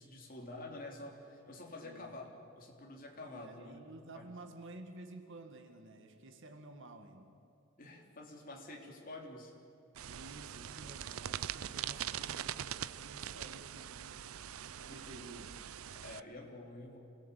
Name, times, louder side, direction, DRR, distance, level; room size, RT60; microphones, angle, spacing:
voice 1, 0.0-2.3 2.6-3.7 4.1-4.3 7.8-9.5 14.9-15.3 15.9-17.0, left 2 dB, 40° left, 1 dB, 3.5 m, -48 dB
voice 2, 1.8-2.1 3.2-7.3 10.0-14.3 14.8-15.5, right 2 dB, 60° right, 6 dB, 2.1 m, -52 dB
sound 1, 9.9-16.2, right 10 dB, 85° right, 0.6 m, -42 dB
27.0 x 18.0 x 8.5 m, 2.8 s
head